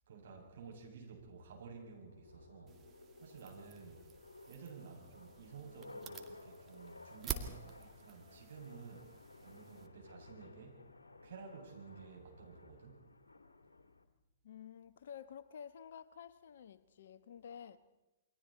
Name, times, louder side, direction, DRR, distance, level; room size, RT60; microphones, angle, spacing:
voice 1, 0.1-2.8 3.2-4.1 4.5-10.9 11.2-13.1, right 5 dB, 60° right, 7.2 m, -53 dB
sound 1, 1.0-14.0, left 2 dB, 80° left, 2.1 m, -57 dB
sound 2, 2.7-9.9, right 7 dB, 20° right, 2.0 m, -49 dB
voice 2, 14.4-17.8, left 8 dB, 60° left, 1.1 m, -51 dB
29.0 x 23.0 x 4.3 m
figure-of-eight pair, 115°, 0 cm